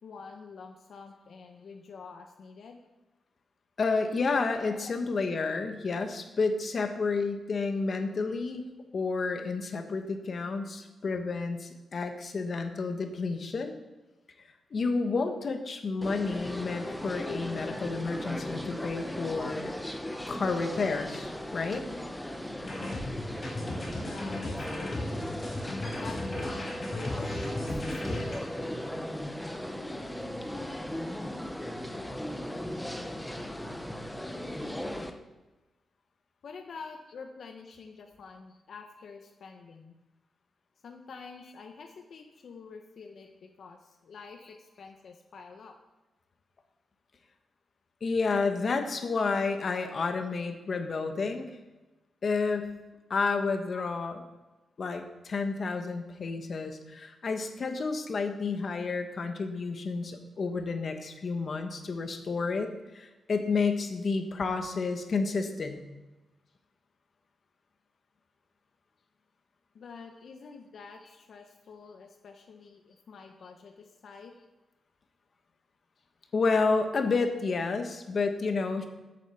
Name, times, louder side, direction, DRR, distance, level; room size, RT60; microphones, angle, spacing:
voice 1, 0.0-2.8 4.7-4.9 15.4-15.5 20.9-21.0 23.9-25.4 25.8-28.8 36.4-40.0 40.8-45.8 53.7-53.9 69.7-74.3 76.0-76.1, left 5 dB, 60° left, 3 dB, 1.0 m, -47 dB
voice 2, 3.8-8.6 8.9-13.7 14.7-19.7 20.3-21.8 48.0-51.5 52.2-52.7 53.1-54.2 54.8-65.8 76.3-78.9, left 4 dB, 45° left, 6 dB, 1.3 m, -30 dB
sound 1, 16.0-35.1, left 1 dB, 5° left, 0.8 m, -37 dB
sound 2, 22.6-28.4, left 1 dB, 30° left, 4.3 m, -36 dB
8.3 x 7.9 x 7.0 m, 1.1 s
wide cardioid pair, 135°, 0 cm